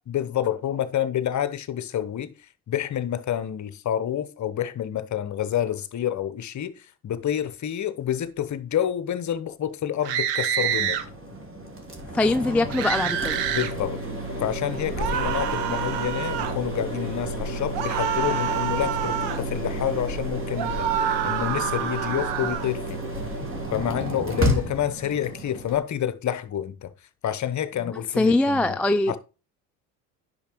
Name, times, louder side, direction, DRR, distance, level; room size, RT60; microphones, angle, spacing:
voice 1, 0.1-2.3 2.7-11.0 13.5-14.0 14.4-23.0 23.7-26.9 27.2-28.8 29.1-29.2, left 10 dB, 35° left, 1.0 m, -28 dB
sound 1, 10.0-11.0 12.7-13.7 15.0-16.6 17.7-19.4 20.6-22.7, right 9 dB, 60° right, 1.3 m, -27 dB
sound 2, 10.6-25.8, right 1 dB, 25° right, 2.5 m, -31 dB
voice 2, 12.1-13.4 28.2-29.2, left 2 dB, 5° left, 0.3 m, -22 dB
10.0 x 5.8 x 3.0 m
hypercardioid pair, 60°, 47 cm